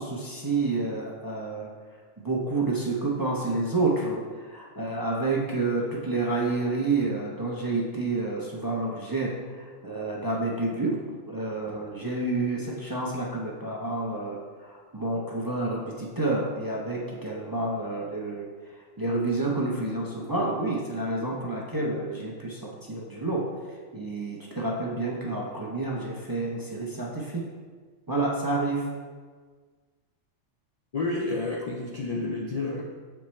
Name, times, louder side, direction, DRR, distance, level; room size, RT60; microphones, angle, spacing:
voice 1, 0.0-1.7 2.2-11.0 11.3-18.5 19.0-27.4 28.1-28.8, right 2 dB, 25° right, -4 dB, 0.5 m, -29 dB
voice 2, 30.9-32.8, left 2 dB, 60° left, -1 dB, 0.4 m, -30 dB
7.1 x 4.4 x 3.2 m, 1.5 s
omnidirectional pair, 1.3 m